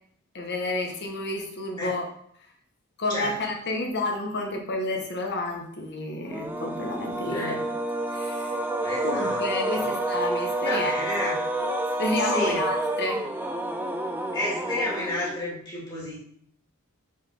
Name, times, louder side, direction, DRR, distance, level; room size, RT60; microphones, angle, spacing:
voice 1, 0.3-2.0 3.0-7.6 8.1-8.6 9.0-10.9 11.2-11.3 12.0-13.3, left 2 dB, 50° left, 2 dB, 1.1 m, -30 dB
sound 1, 6.3-15.6, right 1 dB, 10° right, 0.5 m, -29 dB
voice 2, 7.2-7.6 8.8-9.4 9.7-9.9 10.6-11.3 12.2-12.6 14.3-16.2, left 1 dB, 20° left, -6 dB, 2.2 m, -31 dB
5.3 x 4.0 x 5.3 m, 0.66 s
head